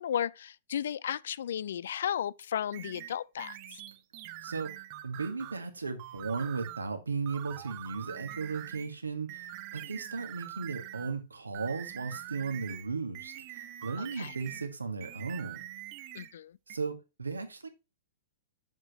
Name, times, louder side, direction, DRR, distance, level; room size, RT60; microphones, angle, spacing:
voice 1, 0.0-3.8 14.0-14.3 16.1-16.6, left 9 dB, 65° left, 0.5 m, -34 dB
sound 1, 2.7-5.6 6.0-6.9 7.3-8.9 9.3-11.2 11.5-14.7 15.0-16.3 16.7-16.8, right 14 dB, 45° right, 0.9 m, -44 dB
voice 2, 4.4-4.7 5.0-15.7 16.7-17.7, right 4 dB, 85° right, 1.8 m, -36 dB
8.0 x 7.3 x 3.0 m
figure-of-eight pair, 105°, 0 cm